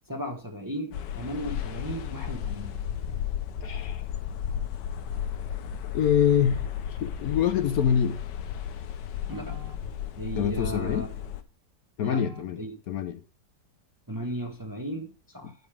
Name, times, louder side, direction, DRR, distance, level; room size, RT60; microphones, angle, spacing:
voice 1, 0.1-2.8 9.3-9.8 10.2-11.1 12.0-12.7 14.1-15.5, equal, 15° right, 1.1 m, -36 dB
sound 1, 0.9-11.4, left 9 dB, 90° left, 1.4 m, -34 dB
voice 2, 3.6-4.0 5.9-8.2 10.4-11.1 12.0-13.2 15.4-15.5, left 8 dB, 65° left, 1.1 m, -26 dB
9.6 x 5.3 x 4.9 m
omnidirectional pair, 1.8 m